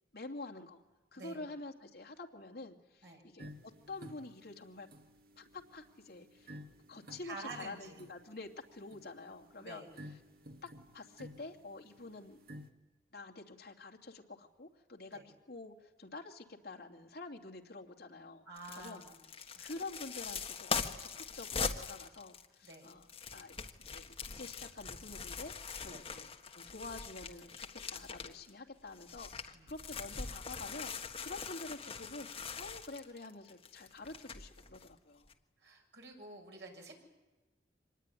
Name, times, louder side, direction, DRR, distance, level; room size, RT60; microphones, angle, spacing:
voice 1, 0.1-0.8 1.1-4.9 5.4-6.6 6.9-9.9 10.6-12.4 13.1-18.5 18.8-19.0 19.6-25.5 25.8-35.3, left 3 dB, 60° left, 2 dB, 2.7 m, -48 dB
sound 1, 3.4-12.7, equal, 60° right, 2.0 m, -54 dB
voice 2, 7.2-8.0 9.6-9.9 15.1-15.2 18.5-19.1 19.5-19.6 22.6-22.9 25.9-26.0 29.5-29.7 35.6-36.9, right 2 dB, 80° right, 1 dB, 6.7 m, -48 dB
sound 2, 18.6-28.5 28.9-34.9 35.3-35.4, left 5 dB, 30° left, 1.5 m, -42 dB
25.5 x 20.0 x 9.9 m, 1.2 s
head